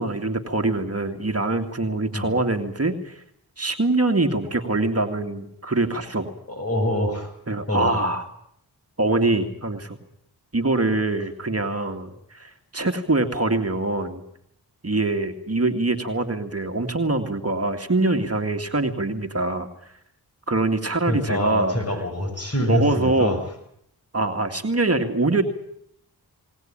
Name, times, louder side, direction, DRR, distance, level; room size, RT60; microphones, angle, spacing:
voice 1, 0.0-3.2 3.6-6.3 7.5-8.3 9.0-10.0 10.5-14.2 14.8-19.7 20.5-21.8 22.6-23.4 24.1-25.4, right 2 dB, 35° right, 6 dB, 2.4 m, -24 dB
voice 2, 6.5-7.3 7.7-7.9 21.1-23.4, left 1 dB, 35° left, 5 dB, 7.0 m, -25 dB
20.0 x 19.0 x 8.9 m, 0.72 s
cardioid pair, 40°, 40 cm